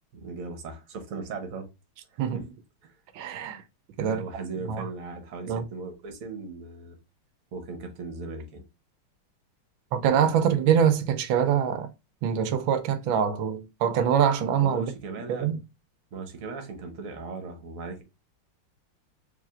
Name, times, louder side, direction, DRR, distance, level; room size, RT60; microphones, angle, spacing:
voice 1, 0.1-1.7 2.1-2.4 2.8-2.9 4.0-7.0 7.5-8.6 14.6-15.5 16.1-18.0, right 4 dB, 50° right, 1.1 m, -38 dB
voice 2, 2.2-2.5 3.1-3.6 4.0-4.2 4.7-4.8 5.5-5.6 9.9-11.9 12.2-14.9 15.3-15.6, right 8 dB, 75° right, 1.3 m, -24 dB
4.8 x 3.3 x 2.4 m
omnidirectional pair, 2.3 m